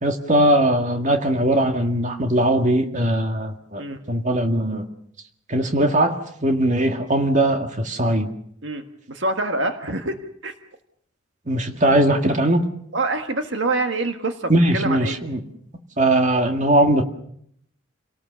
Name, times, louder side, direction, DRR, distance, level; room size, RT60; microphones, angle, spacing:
voice 1, 0.0-3.8 4.1-4.8 5.5-8.3 11.5-12.6 14.5-15.4 16.0-17.0, right 1 dB, 35° right, 4 dB, 1.9 m, -20 dB
voice 2, 9.1-10.1 10.4-10.5 12.9-15.1, right 2 dB, 60° right, 6 dB, 1.5 m, -25 dB
28.5 x 18.5 x 6.9 m, 0.70 s
head